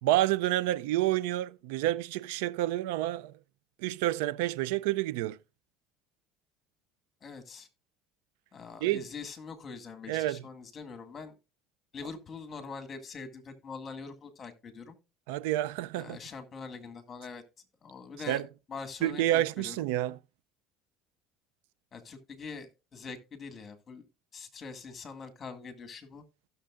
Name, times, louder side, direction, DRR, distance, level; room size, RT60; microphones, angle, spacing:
voice 1, 0.0-3.3 3.8-5.4 8.8-9.1 10.1-10.4 15.3-16.2 18.3-18.4 19.0-20.2, right 14 dB, 85° right, 0.4 m, -29 dB
voice 2, 7.2-7.7 8.5-11.3 11.9-15.0 16.0-17.4 17.8-18.4 18.7-19.8 21.9-24.1 24.3-26.2, left 5 dB, 30° left, 1.9 m, -43 dB
16.0 x 6.6 x 2.5 m
supercardioid pair, 105°, 0 cm